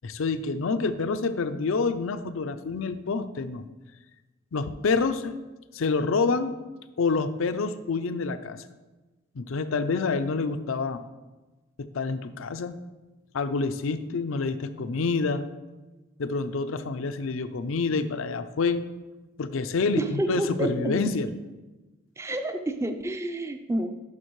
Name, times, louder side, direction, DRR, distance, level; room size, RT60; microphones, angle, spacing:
voice 1, 0.0-3.6 4.5-5.4 5.7-6.5 7.0-8.6 9.3-11.0 11.8-12.8 13.3-15.5 16.2-18.9 19.4-21.3, left 4 dB, 75° left, 11 dB, 0.5 m, -27 dB
voice 2, 20.0-21.0 22.2-23.9, right 1 dB, 15° right, 7 dB, 0.4 m, -29 dB
11.0 x 5.8 x 3.1 m, 1.2 s
head